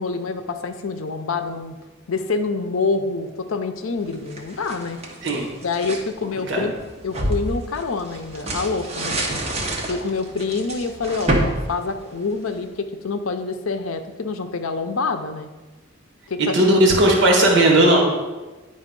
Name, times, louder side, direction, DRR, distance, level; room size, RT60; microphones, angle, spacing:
voice 1, 0.0-1.8 2.1-5.0 5.6-6.8 7.0-9.2 9.9-15.5 16.3-16.8, left 4 dB, 75° left, 8 dB, 0.6 m, -26 dB
sound 1, 4.1-6.1 6.6-12.6, right 1 dB, 30° right, 1.1 m, -28 dB
voice 2, 16.4-18.0, right 1 dB, 60° right, 0 dB, 1.4 m, -16 dB
9.5 x 4.0 x 5.2 m, 1.2 s
head